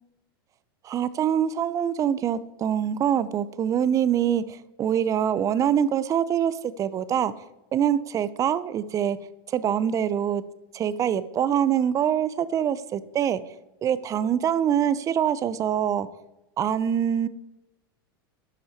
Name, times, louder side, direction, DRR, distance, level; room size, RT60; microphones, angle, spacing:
voice 1, 0.8-4.4 4.8-7.3 7.7-9.2 9.5-10.4 10.7-13.4 13.8-16.1 16.6-17.3, right 9 dB, 30° right, 16 dB, 0.5 m, -24 dB
12.0 x 5.5 x 4.5 m, 0.97 s
hypercardioid pair, 110°, 12 cm